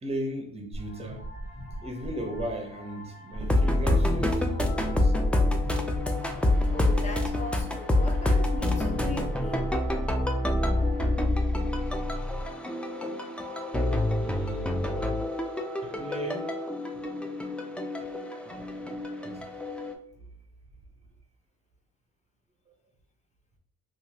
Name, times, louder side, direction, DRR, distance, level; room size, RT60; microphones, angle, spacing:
voice 1, 0.0-1.2 1.8-5.2 5.6-5.7 14.2-14.8 15.8-16.5 18.4-18.7 19.2-19.7, right 1 dB, 20° right, 0.7 m, -37 dB
sound 1, 0.7-11.2, equal, 60° left, 1.3 m, -41 dB
sound 2, 3.4-19.9, left 1 dB, 5° left, 0.3 m, -27 dB
voice 2, 6.7-9.7, left 1 dB, 25° left, 0.8 m, -38 dB
2.9 x 2.5 x 2.7 m
cardioid pair, 90°, 30 cm